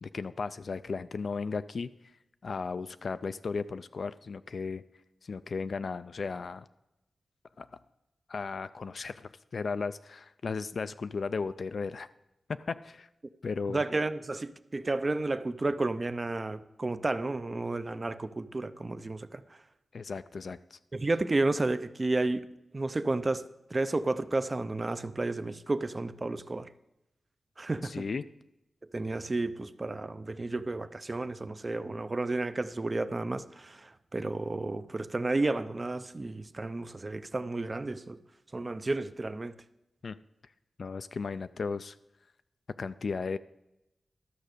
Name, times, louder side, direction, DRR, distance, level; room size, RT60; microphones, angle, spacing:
voice 1, 0.0-1.9 2.4-4.8 5.2-6.7 7.6-7.7 8.3-12.1 12.6-13.1 13.4-13.8 19.9-20.8 27.8-28.2 40.0-40.2 40.8-42.0 42.8-43.4, left 4 dB, 60° left, 13 dB, 0.3 m, -35 dB
voice 2, 13.7-19.4 20.9-22.5 22.7-23.4 23.7-26.7 27.6-28.0 28.9-38.2 38.5-39.6, right 2 dB, 30° right, 13 dB, 0.4 m, -32 dB
12.5 x 6.3 x 6.6 m, 0.90 s
wide cardioid pair, 120°, 0 cm